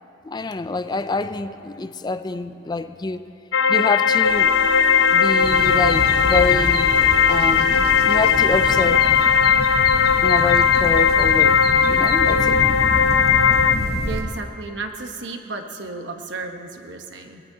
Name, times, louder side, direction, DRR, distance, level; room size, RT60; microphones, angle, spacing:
voice 1, 0.3-3.3 3.7-4.5 5.1-9.1 10.2-11.6 11.9-12.6, left 3 dB, 20° left, 11 dB, 0.4 m, -26 dB
sound 1, 3.5-13.8, left 7 dB, 75° left, 0.6 m, -17 dB
sound 2, 4.2-9.4, right 1 dB, 85° right, 3.1 m, -35 dB
sound 3, 5.4-14.2, left 1 dB, 55° left, 1.0 m, -28 dB
voice 2, 14.0-17.4, right 3 dB, 65° right, 4 dB, 1.1 m, -33 dB
23.5 x 19.0 x 2.8 m, 2.7 s
head